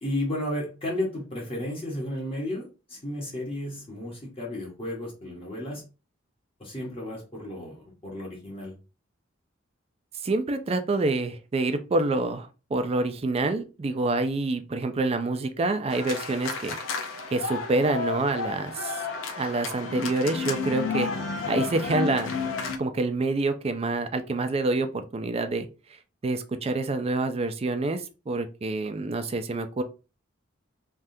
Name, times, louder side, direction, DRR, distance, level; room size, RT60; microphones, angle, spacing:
voice 1, 0.0-5.8 6.6-8.8, left 1 dB, 30° left, -2 dB, 1.0 m, -33 dB
voice 2, 10.2-16.8 17.3-19.1 19.4-21.1 21.4-22.3 22.8-25.7 26.2-29.8, right 2 dB, 30° right, 9 dB, 0.4 m, -27 dB
sound 1, 15.9-22.8, left 5 dB, 80° left, 0.5 m, -31 dB
3.4 x 2.3 x 2.7 m, 0.31 s
head